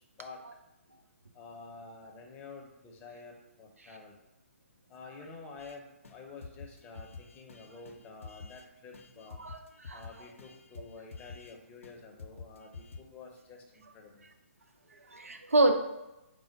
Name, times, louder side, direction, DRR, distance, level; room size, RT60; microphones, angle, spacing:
voice 1, 1.3-4.2 4.9-9.4 9.9-14.3, left 4 dB, 20° left, 1 dB, 0.7 m, -49 dB
sound 1, 5.6-5.8 6.0-6.2 6.4-8.7 8.9-11.5 11.8-11.9 12.2-13.0, left 4 dB, 70° left, 0.5 m, -48 dB
voice 2, 9.4-10.3 14.9-15.8, right 2 dB, 85° right, 5 dB, 0.6 m, -28 dB
4.4 x 2.0 x 4.5 m, 0.96 s
figure-of-eight pair, 130°, 7 cm